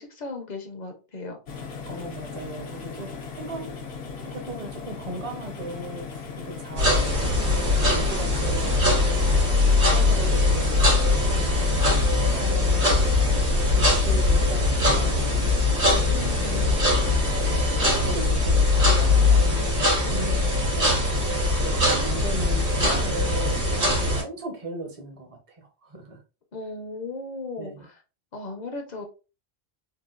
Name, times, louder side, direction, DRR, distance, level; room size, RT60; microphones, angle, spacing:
voice 1, 0.0-1.4 16.0-16.8 26.5-27.9 28.3-29.1, left 3 dB, 50° left, 4 dB, 0.7 m, -36 dB
sound 1, 1.5-18.2, left 4 dB, 75° left, 0.9 m, -38 dB
voice 2, 1.9-9.3 9.8-13.2 13.7-15.3 16.3-17.0 17.4-26.2 27.6-27.9, right 2 dB, 35° right, 3 dB, 0.8 m, -38 dB
sound 2, 6.8-24.2, left 2 dB, 85° right, 2.0 m, -21 dB
3.8 x 2.3 x 2.3 m, 0.31 s
omnidirectional pair, 1.1 m